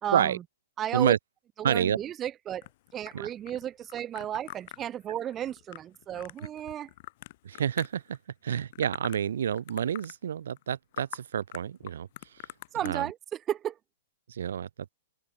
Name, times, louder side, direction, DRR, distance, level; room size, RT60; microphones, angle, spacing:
voice 1, 0.0-0.4 0.8-1.1 1.6-2.7 2.9-6.9 12.7-13.8, right 11 dB, 25° right, 1.9 m, -33 dB
voice 2, 1.6-2.0 3.1-3.3 7.4-8.2 8.4-12.5 12.8-13.1 14.3-14.9, right 9 dB, 65° right, 2.2 m, -29 dB
sound 1, 2.6-8.2 8.5-9.3 9.5-10.2 10.6-10.7 10.9-11.2 11.5-12.9, left 17 dB, 50° left, 2.7 m, -45 dB
open air
figure-of-eight pair, 110°, 0 cm